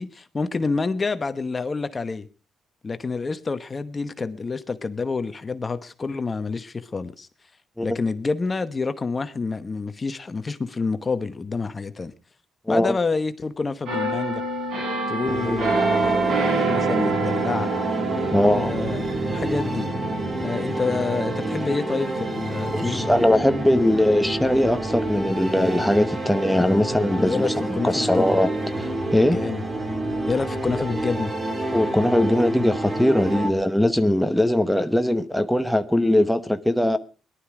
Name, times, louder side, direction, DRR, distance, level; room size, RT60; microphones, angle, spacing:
voice 1, 0.0-2.3 2.8-7.3 7.8-12.1 12.7-14.4 15.1-17.7 18.4-19.0 19.3-19.9 20.4-23.1 27.1-28.3 29.3-29.6 30.3-31.3, left 4 dB, 30° left, 1.0 m, -28 dB
sound 1, 13.9-25.4 25.8-26.1, right 3 dB, 80° right, 7.0 m, -28 dB
sound 2, 15.3-33.5, right 1 dB, 30° right, 2.7 m, -28 dB
voice 2, 18.3-18.7 22.7-28.5 28.8-29.4 31.7-37.0, left 1 dB, 5° left, 1.0 m, -20 dB
18.5 x 12.0 x 4.9 m
cardioid pair, 90°, 0 cm